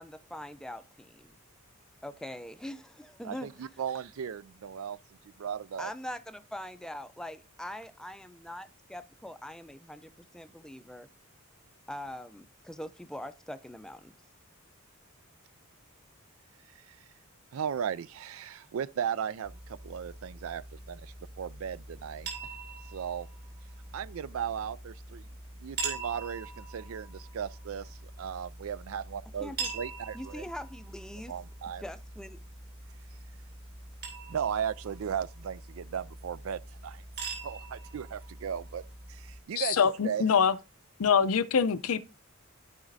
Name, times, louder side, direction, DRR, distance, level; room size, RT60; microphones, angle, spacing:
voice 1, 0.0-1.3 2.0-3.5 5.8-11.1 11.9-14.1 29.4-29.7 30.1-31.3 31.8-32.4, left 1 dB, 5° left, 0.4 m, -42 dB
voice 2, 3.2-5.0 5.4-5.9 16.9-17.0 17.5-22.3 22.9-23.3 23.9-25.3 25.6-30.4 31.3-31.8 34.3-37.0 37.4-38.8 39.1-40.2, right 8 dB, 70° right, 0.4 m, -36 dB
sound 1, 19.4-39.4, right 3 dB, 45° right, 3.1 m, -43 dB
voice 3, 39.6-40.6 41.0-42.0, left 6 dB, 75° left, 0.6 m, -24 dB
14.5 x 4.9 x 2.6 m
head